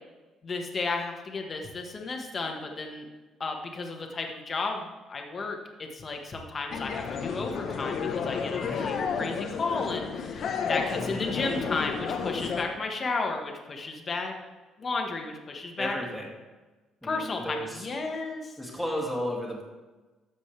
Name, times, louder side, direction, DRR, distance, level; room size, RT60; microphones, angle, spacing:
voice 1, 0.4-3.1 3.4-14.3 14.8-16.0 17.0-18.6, left 3 dB, 30° left, 2 dB, 1.5 m, -33 dB
sound 1, 6.7-12.6, left 6 dB, 55° left, 1.0 m, -31 dB
voice 2, 8.6-8.9 10.9-11.3 15.8-16.3 17.0-17.9 18.6-19.6, equal, ahead, -3 dB, 2.5 m, -34 dB
12.5 x 7.5 x 3.4 m, 1.2 s
cardioid pair, 120°, 0 cm